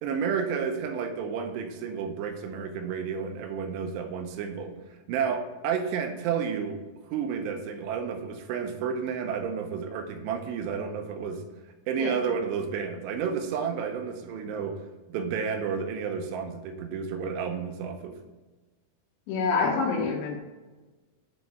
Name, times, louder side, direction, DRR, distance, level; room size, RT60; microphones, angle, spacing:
voice 1, 0.0-4.8 5.1-6.8 7.0-11.4 11.9-14.8 15.1-18.2, right 6 dB, 85° right, 5 dB, 2.9 m, -31 dB
voice 2, 19.3-20.4, left 4 dB, 85° left, -2 dB, 3.1 m, -26 dB
8.6 x 3.8 x 3.5 m, 1.2 s
omnidirectional pair, 4.9 m